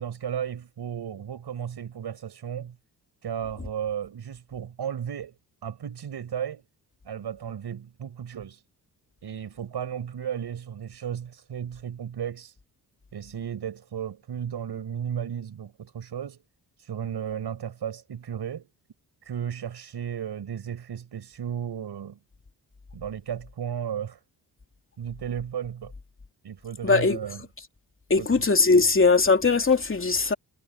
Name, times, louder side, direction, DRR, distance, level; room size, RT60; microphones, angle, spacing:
voice 1, 0.0-2.7 3.2-5.3 5.6-6.7 7.0-8.6 9.2-12.5 13.1-16.4 16.8-18.7 19.2-22.2 22.9-24.2 25.0-25.9 26.4-27.5 28.2-28.5 28.7-28.9, right 8 dB, 70° right, 6.3 m, -34 dB
voice 2, 26.8-27.2 28.1-30.3, left 4 dB, 30° left, 2.8 m, -20 dB
cardioid pair, 75°, 41 cm